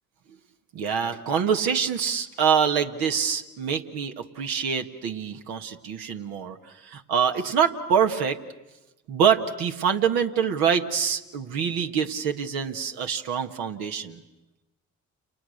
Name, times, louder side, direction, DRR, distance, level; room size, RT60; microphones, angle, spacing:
voice 1, 0.7-8.4 9.1-14.2, right 7 dB, 75° right, 5 dB, 1.8 m, -25 dB
30.0 x 29.0 x 6.6 m, 1.0 s
hypercardioid pair, 45°, 37 cm